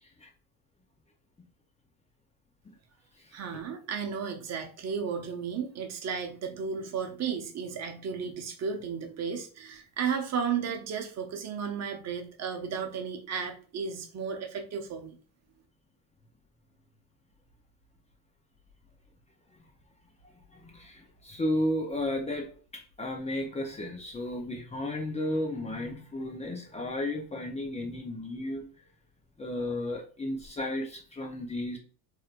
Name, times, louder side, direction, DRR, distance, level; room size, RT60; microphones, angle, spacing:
voice 1, 3.3-15.2, right 6 dB, 35° right, 4 dB, 0.9 m, -34 dB
voice 2, 20.5-28.6 29.4-31.8, left 1 dB, 15° left, 1 dB, 0.6 m, -33 dB
4.4 x 3.4 x 2.5 m, 0.40 s
cardioid pair, 145°, 44 cm